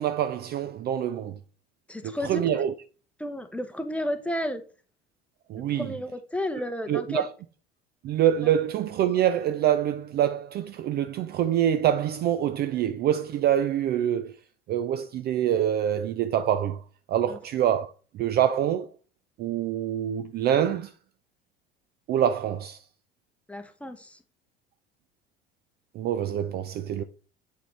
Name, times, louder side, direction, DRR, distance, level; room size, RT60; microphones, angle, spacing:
voice 1, 0.0-1.4 2.0-2.7 5.5-5.9 6.9-7.3 8.0-14.3 14.7-16.8 17.1-18.9 19.4-20.9 22.1-22.8 26.0-27.0, right 10 dB, 35° right, 0.4 m, -25 dB
voice 2, 1.9-2.4 3.2-4.6 5.7-7.3 17.3-17.4 23.5-24.2, left 1 dB, 5° left, 0.8 m, -32 dB
8.3 x 4.9 x 3.2 m
figure-of-eight pair, 65°, 30 cm